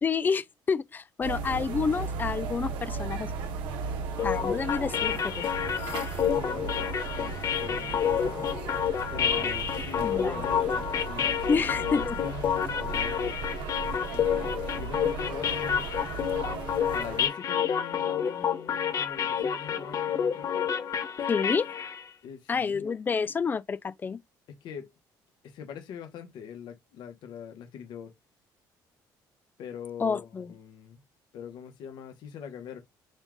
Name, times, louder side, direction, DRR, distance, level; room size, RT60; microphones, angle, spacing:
voice 1, 0.0-3.3 4.2-5.5 10.0-10.4 11.5-12.2 21.3-21.7 22.5-24.2 30.0-30.5, left 5 dB, 25° left, 0.4 m, -29 dB
sound 1, 1.2-17.3, right 5 dB, 85° right, 1.1 m, -36 dB
sound 2, 4.2-22.0, left 8 dB, 45° left, 0.8 m, -29 dB
voice 2, 6.3-8.5 9.1-13.5 14.1-15.9 16.9-20.5 22.2-22.8 24.5-24.9 25.4-28.2 29.6-31.0 31.3-32.8, left 7 dB, 70° left, 1.2 m, -42 dB
5.3 x 2.4 x 3.7 m
cardioid pair, 120°, 8 cm